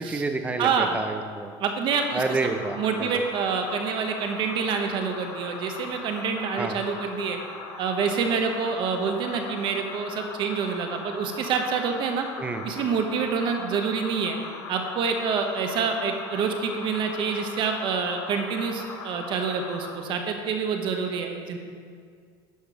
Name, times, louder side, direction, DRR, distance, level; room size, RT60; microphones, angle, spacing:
voice 1, 0.0-1.5 2.1-3.1 6.6-6.8 12.4-12.6, right 3 dB, 10° right, 7 dB, 0.5 m, -29 dB
voice 2, 0.6-1.0 1.6-7.4 7.8-12.3 12.6-14.4 14.7-21.6, right 5 dB, 40° right, 4 dB, 1.0 m, -27 dB
sound 1, 1.9-20.0, left 4 dB, 75° left, 1.7 m, -40 dB
11.0 x 5.2 x 5.1 m, 2.1 s
cardioid pair, 155°, 12 cm